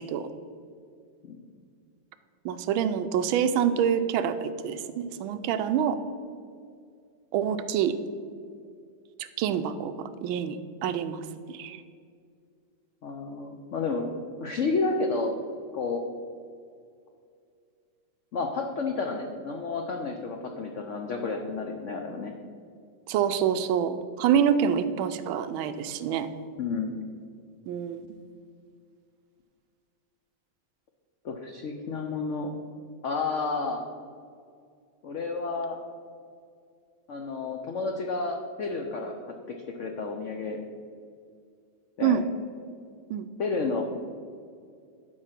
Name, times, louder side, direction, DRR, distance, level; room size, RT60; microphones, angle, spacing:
voice 1, 2.4-6.0 7.3-8.0 9.2-10.6 10.8-11.8 23.1-26.3 27.7-28.1 42.0-42.2 43.1-43.2, right 8 dB, 85° right, 10 dB, 1.4 m, -26 dB
voice 2, 13.0-14.1 14.4-15.3 15.7-16.0 18.3-22.3 26.6-27.0 31.2-32.5 33.0-33.8 35.0-35.8 37.1-40.6 42.0-42.2 43.4-43.8, left 4 dB, 90° left, 3 dB, 0.6 m, -31 dB
11.0 x 4.6 x 5.8 m, 2.3 s
omnidirectional pair, 2.2 m